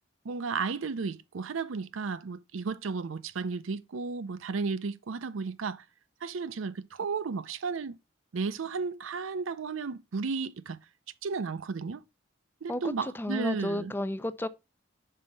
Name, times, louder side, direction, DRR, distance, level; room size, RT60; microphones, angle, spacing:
voice 1, 0.2-5.8 6.2-8.0 8.3-10.8 11.2-12.0 12.6-13.9, right 4 dB, 85° right, 0.5 m, -33 dB
voice 2, 12.7-14.5, left 1 dB, 10° left, 0.4 m, -32 dB
5.5 x 4.4 x 5.2 m
head